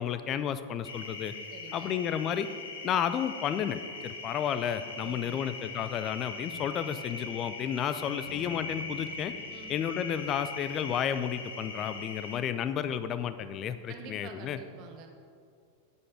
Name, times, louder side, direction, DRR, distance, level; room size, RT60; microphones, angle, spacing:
voice 1, 0.0-1.3 1.7-2.5 2.8-3.8 4.0-9.3 9.7-14.6, left 9 dB, 30° left, 12 dB, 0.5 m, -32 dB
sound 1, 0.8-12.4, left 3 dB, 65° left, 1.3 m, -41 dB
voice 2, 1.5-2.0 5.0-5.5 9.5-9.8 13.9-15.1, right 4 dB, 40° right, 4 dB, 1.2 m, -47 dB
Bass guitar, 8.3-12.3, left 2 dB, 45° left, 1.3 m, -54 dB
9.7 x 8.1 x 5.0 m, 2.3 s
figure-of-eight pair, 90°, 0 cm